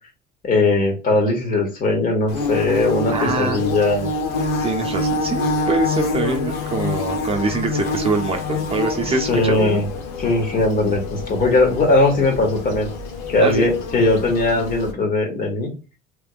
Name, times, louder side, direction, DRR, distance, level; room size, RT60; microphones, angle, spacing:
voice 1, 0.4-4.1 9.3-9.8 10.2-12.9 13.3-15.7, left 2 dB, 40° left, 2 dB, 1.5 m, -19 dB
Bird / Buzz, 2.3-14.9, left 3 dB, 80° left, 0.9 m, -26 dB
voice 2, 3.1-3.6 4.6-9.8 13.4-13.7, right 3 dB, 25° right, 2 dB, 0.7 m, -24 dB
3.4 x 3.2 x 2.4 m, 0.32 s
supercardioid pair, 80°, 21 cm